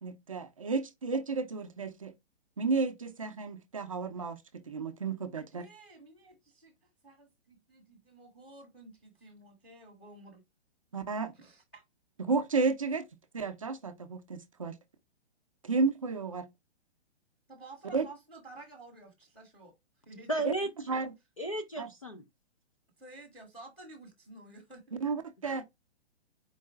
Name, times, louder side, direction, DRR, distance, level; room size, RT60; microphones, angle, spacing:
voice 1, 0.0-2.1 2.6-5.6 10.9-11.3 12.2-13.1 13.3-14.8 15.6-16.5 17.9-18.1 20.4-20.5 20.9-21.1 21.8-21.9 25.0-25.6, right 4 dB, 30° right, 0.5 m, -32 dB
voice 2, 5.5-10.4 11.3-11.8 17.5-19.7 20.1-20.3 23.0-25.0, right 2 dB, 5° left, 0.7 m, -52 dB
voice 3, 20.3-20.7 21.4-22.2 25.5-25.6, right 2 dB, 35° left, 0.4 m, -34 dB
4.7 x 2.1 x 4.4 m
hypercardioid pair, 180°, 33 cm